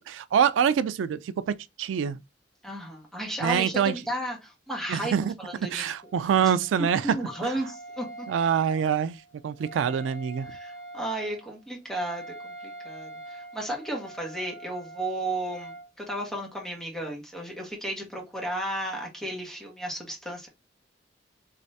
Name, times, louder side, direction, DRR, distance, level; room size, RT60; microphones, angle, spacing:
voice 1, 0.0-2.2 3.4-4.0 4.9-5.3 5.7-7.2 7.4-7.6 8.3-10.5, right 8 dB, 90° right, 0.3 m, -25 dB
voice 2, 2.6-5.9 6.8-8.3 10.5-20.5, right 1 dB, ahead, 1.2 m, -34 dB
Wind instrument woodwind instrument, 5.9-15.9, right 2 dB, 70° left, 1.4 m, -44 dB
3.2 x 3.1 x 2.7 m
head